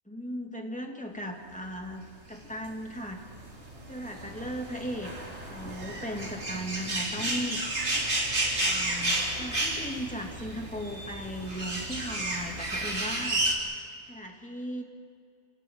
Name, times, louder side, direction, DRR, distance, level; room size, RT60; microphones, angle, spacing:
voice 1, 0.1-3.2 3.9-5.1 5.4-7.9 8.6-13.6 14.1-14.8, equal, 5° left, 2 dB, 2.4 m, -37 dB
sound 1, 2.4-13.6, right 1 dB, 50° right, 3.5 m, -32 dB
29.5 x 26.5 x 4.7 m, 2.5 s
omnidirectional pair, 1.5 m